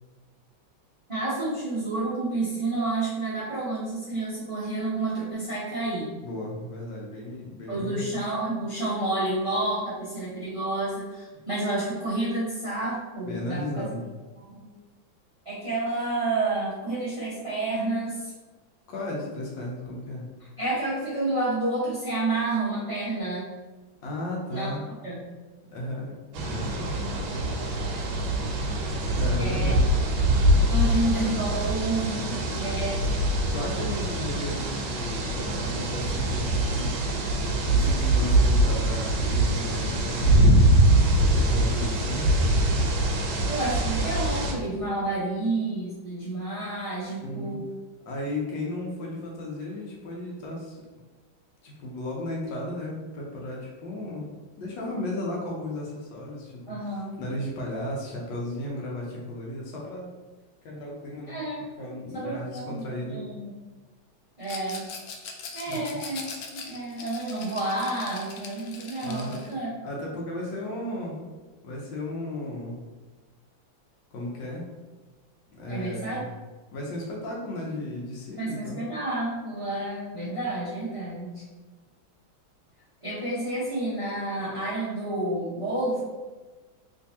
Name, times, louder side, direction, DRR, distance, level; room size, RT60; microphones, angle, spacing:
voice 1, 1.1-6.1 7.7-13.9 14.4-14.7 15.4-18.3 20.6-23.4 24.5-24.7 25.0-25.2 29.4-29.8 30.7-33.0 43.5-47.7 56.7-57.2 61.3-61.7 62.1-63.5 64.4-64.8 65.5-66.3 66.5-69.7 75.7-76.2 78.4-81.4 83.0-86.0, right 2 dB, 25° right, -10 dB, 0.7 m, -30 dB
voice 2, 6.2-8.2 13.2-14.0 18.9-20.2 24.0-24.9 25.7-27.0 29.1-29.9 33.5-37.0 37.7-40.7 41.2-42.2 47.2-47.6 48.1-50.8 51.6-54.3 54.6-60.1 60.6-61.4 61.8-63.2 65.7-65.8 69.0-69.4 69.8-71.3 71.6-72.8 74.1-74.7 75.6-76.3 76.7-78.8, left 1 dB, 70° left, -2 dB, 1.4 m, -34 dB
sound 1, 26.3-44.5, right 1 dB, 80° right, 1.4 m, -23 dB
Rattle, 64.4-69.5, left 5 dB, 85° left, 0.8 m, -41 dB
3.4 x 3.0 x 2.8 m, 1.3 s
omnidirectional pair, 2.1 m